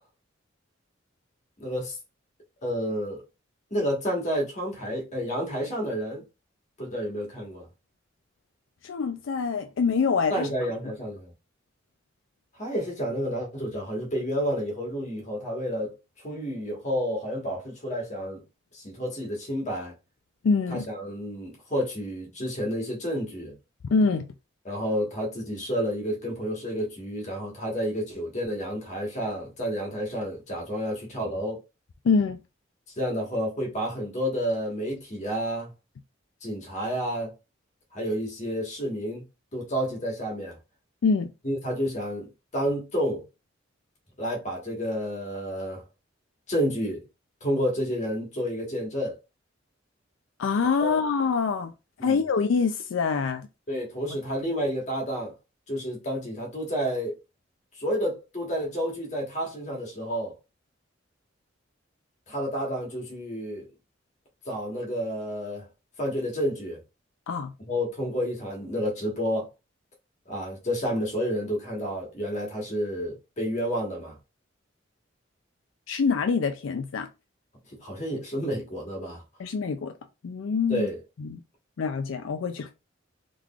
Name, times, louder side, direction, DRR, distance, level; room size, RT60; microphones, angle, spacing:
voice 1, 1.6-2.0 2.6-3.2 3.7-6.2 6.8-7.7 10.3-11.3 12.6-16.0 16.2-18.4 18.7-19.9 20.7-23.6 24.6-31.6 33.0-35.7 36.4-37.3 37.9-39.2 39.5-40.6 41.4-43.2 44.2-45.8 46.5-47.0 47.4-49.2 50.8-51.0 52.0-52.2 53.7-55.3 55.7-57.2 57.8-60.3 62.3-63.7 64.4-65.7 66.0-66.8 67.7-69.5 70.3-74.2 77.7-79.2 80.7-81.0, equal, 40° left, 1.4 m, -30 dB
voice 2, 8.8-10.5 20.4-20.8 23.9-24.3 32.0-32.4 41.0-41.3 50.4-51.7 52.0-53.5 67.3-67.5 75.9-77.1 79.4-79.9 80.2-80.9 81.2-81.4 81.8-82.7, left 5 dB, 80° left, 0.4 m, -25 dB
3.8 x 3.2 x 2.4 m
head